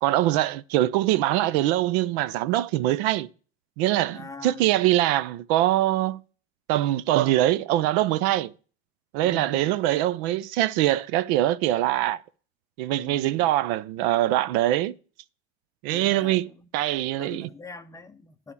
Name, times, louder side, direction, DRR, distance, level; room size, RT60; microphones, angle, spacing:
voice 1, 0.0-3.3 3.8-6.2 6.7-8.5 9.1-12.2 12.8-15.0 15.8-16.5 16.7-17.5, right 14 dB, 80° right, 0.6 m, -23 dB
voice 2, 4.1-4.8 9.2-9.7 12.9-13.5 15.9-16.7 17.0-18.5, left 4 dB, 10° left, 0.5 m, -43 dB
10.5 x 3.6 x 7.0 m
cardioid pair, 155°, 31 cm